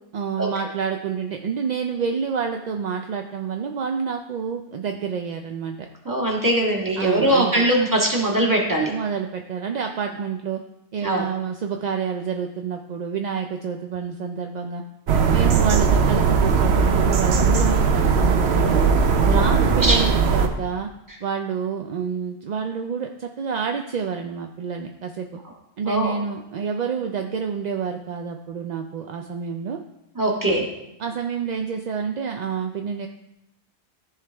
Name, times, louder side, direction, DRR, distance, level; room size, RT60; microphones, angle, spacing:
voice 1, 0.1-5.9 7.0-7.7 8.9-10.6 10.9-14.8 15.3-18.8 19.2-20.9 21.2-25.4 25.8-29.8 31.0-33.1, right 6 dB, 55° right, 4 dB, 0.5 m, -28 dB
voice 2, 6.0-8.9 11.0-11.2 19.2-20.0 25.8-26.2 30.1-30.7, right 1 dB, 15° right, -2 dB, 1.7 m, -21 dB
sound 1, 15.1-20.5, right 5 dB, 70° right, 1.0 m, -18 dB
14.0 x 4.8 x 3.4 m, 0.88 s
omnidirectional pair, 1.1 m